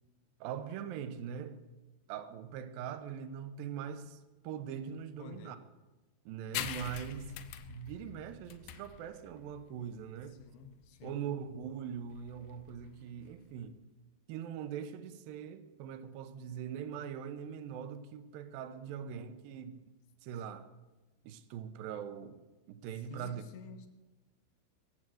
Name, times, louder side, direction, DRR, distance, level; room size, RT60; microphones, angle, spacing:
voice 1, 0.4-1.7 2.1-5.6 6.3-7.3 7.7-10.4 11.0-13.8 14.3-19.8 20.2-20.7 21.2-22.4 22.7-23.4, right 8 dB, 75° right, 2.2 m, -42 dB
voice 2, 5.2-5.7 10.3-11.3 18.9-19.0 22.9-23.9, left 6 dB, 70° left, 2.7 m, -51 dB
sound 1, 6.5-13.7, left 10 dB, 90° left, 3.2 m, -45 dB
22.0 x 7.7 x 7.7 m
omnidirectional pair, 5.1 m